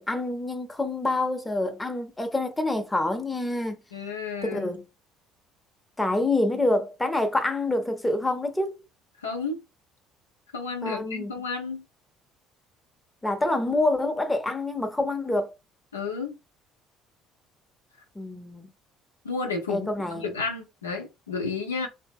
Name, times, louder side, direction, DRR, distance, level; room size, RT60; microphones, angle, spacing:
voice 1, 0.0-3.8 4.4-4.8 6.0-8.8 10.8-11.3 13.2-15.5 18.1-18.7 19.7-20.3, left 2 dB, 15° left, 0.7 m, -27 dB
voice 2, 3.9-4.7 9.2-9.6 10.5-11.8 15.9-16.4 19.2-19.9 20.2-21.9, left 4 dB, 85° left, 0.5 m, -31 dB
2.7 x 2.0 x 3.5 m
figure-of-eight pair, 55°, 0 cm